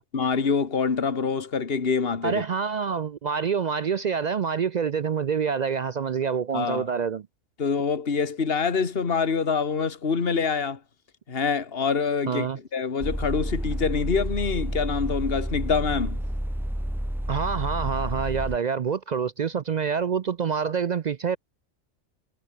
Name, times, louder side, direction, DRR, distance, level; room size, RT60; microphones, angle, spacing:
voice 1, 0.1-2.4 6.5-6.9 7.6-10.8 11.3-16.2, left 5 dB, 50° left, 2.0 m, -25 dB
voice 2, 2.2-7.3 12.3-12.6 17.3-21.4, right 6 dB, 55° right, 0.5 m, -27 dB
sound 1, 13.0-18.6, equal, ahead, 0.6 m, -30 dB
omnidirectional pair, 1.3 m